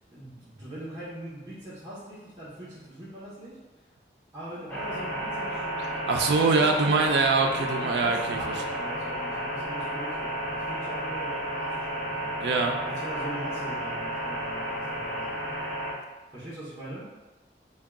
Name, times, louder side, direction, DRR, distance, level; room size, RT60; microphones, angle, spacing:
voice 1, 0.1-3.9 4.3-7.1 7.4-12.3 12.8-15.4 16.3-17.1, right 1 dB, 25° right, -12 dB, 0.9 m, -41 dB
sound 1, 4.7-15.9, right 1 dB, 5° left, 0.7 m, -32 dB
voice 2, 6.1-8.4 12.4-12.8, right 3 dB, 80° right, 3 dB, 0.4 m, -23 dB
3.6 x 2.3 x 3.5 m, 1.1 s
head